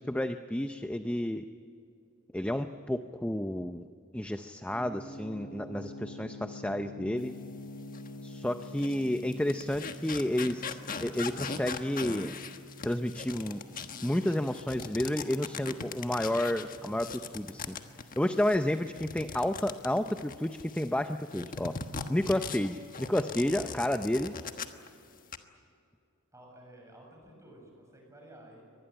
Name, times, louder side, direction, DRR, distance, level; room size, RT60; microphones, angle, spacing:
voice 1, 0.0-1.5 2.3-3.9 4.1-7.4 8.2-12.3 12.8-13.6 14.0-17.8 18.2-21.8 22.1-24.3, left 1 dB, 5° left, 8 dB, 0.5 m, -31 dB
sound 1, 4.7-19.4, left 1 dB, 65° left, 3.9 m, -48 dB
sound 2, 7.9-8.1 8.6-20.9 21.3-24.9 25.1-25.4, left 5 dB, 40° left, 1.4 m, -40 dB
voice 2, 26.3-28.6, right 1 dB, 15° right, 0 dB, 7.5 m, -53 dB
24.0 x 20.0 x 9.1 m, 2.4 s
head